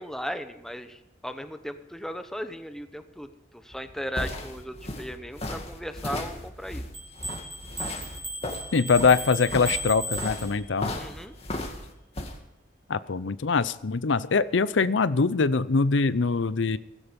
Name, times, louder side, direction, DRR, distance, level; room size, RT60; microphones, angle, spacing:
voice 1, 0.0-6.8 11.0-11.3, equal, ahead, 9 dB, 1.0 m, -36 dB
sound 1, 3.7-12.3, left 1 dB, 35° left, 2.2 m, -36 dB
sound 2, 6.9-10.9, right 1 dB, 30° right, 4.4 m, -36 dB
voice 2, 8.7-10.9 12.9-16.8, left 4 dB, 85° left, 16 dB, 0.6 m, -23 dB
17.0 x 16.0 x 5.3 m, 0.86 s
head